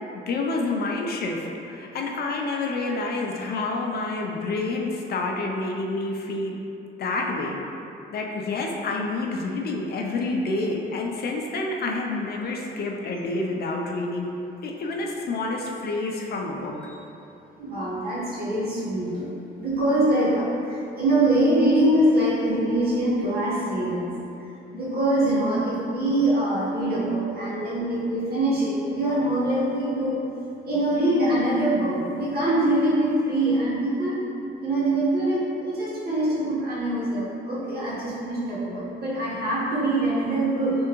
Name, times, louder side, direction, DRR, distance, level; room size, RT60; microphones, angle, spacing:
voice 1, 0.3-6.6 7.0-7.6 8.1-14.3 14.6-16.7, left 3 dB, 55° left, 0 dB, 0.5 m, -28 dB
voice 2, 17.6-19.3 19.6-24.2 24.7-30.2 30.6-34.2 34.6-40.8, right 1 dB, 50° right, -8 dB, 1.3 m, -24 dB
3.5 x 3.3 x 3.0 m, 2.8 s
cardioid pair, 90°, 20 cm